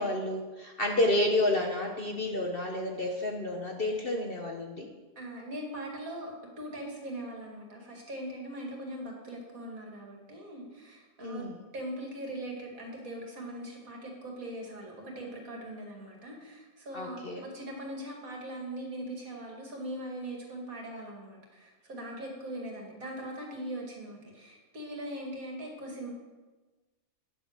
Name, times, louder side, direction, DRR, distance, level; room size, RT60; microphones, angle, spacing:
voice 1, 0.0-4.9 11.2-11.5 16.9-17.4, left 1 dB, 40° left, 1 dB, 1.1 m, -30 dB
voice 2, 5.2-11.5 11.7-26.1, right 1 dB, 55° right, 0 dB, 2.6 m, -41 dB
9.6 x 7.9 x 6.7 m, 1.2 s
omnidirectional pair, 1.7 m